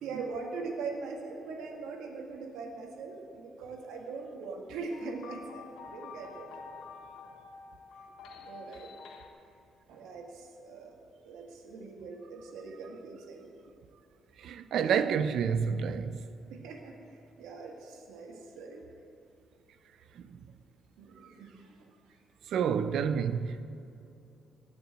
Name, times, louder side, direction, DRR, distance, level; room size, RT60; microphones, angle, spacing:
voice 1, 0.0-5.6 5.9-6.5 8.4-8.9 9.9-11.0 11.2-13.5 14.4-14.5 16.5-16.9 17.4-18.8 21.0-21.8, right 4 dB, 90° right, 1.8 m, -41 dB
sound 1, 4.9-9.3, left 5 dB, 90° left, 1.3 m, -48 dB
voice 2, 14.4-16.2 22.5-23.6, right 7 dB, 70° right, 0.6 m, -29 dB
16.5 x 6.0 x 8.7 m
cardioid pair, 90°, 0 cm